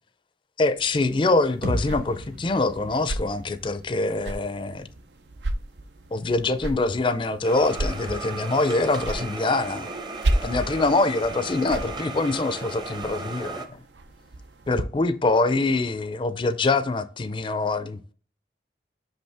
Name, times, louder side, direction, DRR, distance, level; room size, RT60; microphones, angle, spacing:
voice 1, 0.6-4.9 6.1-9.9 10.4-13.6 14.7-18.1, left 3 dB, 30° left, 0.4 m, -24 dB
sound 1, 0.8-14.8, right 1 dB, 80° right, 0.6 m, -34 dB
sound 2, 1.6-5.5, equal, 50° right, 1.0 m, -36 dB
sound 3, 7.4-13.7, right 3 dB, 25° right, 0.7 m, -35 dB
6.0 x 5.4 x 3.4 m
head